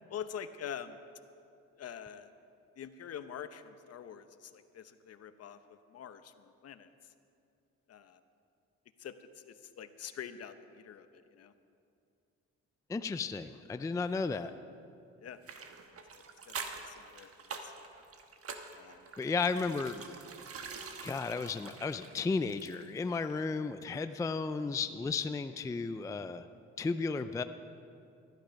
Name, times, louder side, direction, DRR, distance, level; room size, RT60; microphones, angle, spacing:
voice 1, 0.1-1.0 1.8-2.3 2.8-6.9 7.9-8.2 9.0-11.5 15.2-15.4 16.1-17.3 17.6-17.7 18.7-19.0, left 8 dB, 55° left, 11 dB, 0.8 m, -45 dB
voice 2, 12.9-14.5 19.2-20.0 21.0-26.4 26.8-27.4, left 4 dB, 10° left, 10 dB, 0.4 m, -34 dB
sound 1, 15.4-23.0 23.3-23.4, right 5 dB, 50° right, 1.2 m, -46 dB
14.0 x 12.0 x 5.2 m, 2.5 s
cardioid pair, 90°, 30 cm